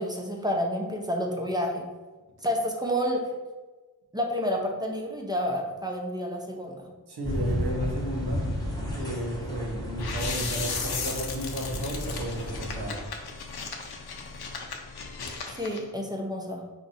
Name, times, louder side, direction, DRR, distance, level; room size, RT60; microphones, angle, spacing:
voice 1, 0.0-1.8 2.4-3.2 4.1-6.9 15.5-16.6, equal, 10° right, 0 dB, 0.6 m, -29 dB
voice 2, 7.1-8.5 8.9-13.0, right 1 dB, 90° right, 0 dB, 1.0 m, -33 dB
sound 1, 7.2-13.0, left 1 dB, 10° left, 0.9 m, -33 dB
sound 2, 10.0-15.8, left 5 dB, 80° left, 0.7 m, -36 dB
4.7 x 2.6 x 4.0 m, 1.2 s
wide cardioid pair, 120°, 38 cm